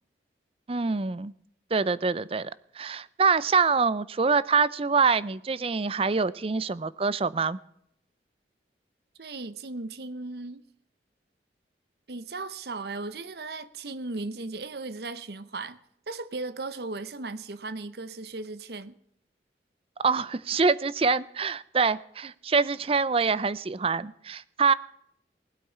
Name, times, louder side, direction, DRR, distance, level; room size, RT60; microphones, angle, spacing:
voice 1, 0.7-1.3 1.7-7.6 20.0-24.7, right 5 dB, 30° right, 0.5 m, -25 dB
voice 2, 9.2-10.6 12.1-15.8 16.1-18.9, right 3 dB, 60° right, 0.8 m, -36 dB
19.5 x 8.3 x 5.6 m
head